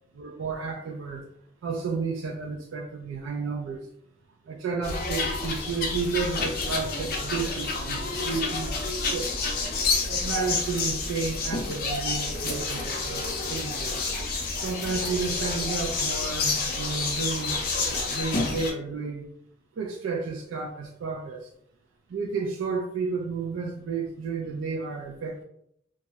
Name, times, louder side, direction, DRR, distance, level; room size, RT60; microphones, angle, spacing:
voice 1, 0.1-1.3 1.6-3.8 4.5-9.3 10.1-13.9 14.6-17.6 18.1-19.3 19.8-21.5 22.1-25.4, right 4 dB, 80° right, 1 dB, 0.3 m, -32 dB
sound 1, 4.8-18.7, left 3 dB, 50° left, 0.5 m, -29 dB
2.3 x 2.0 x 2.7 m, 0.72 s
head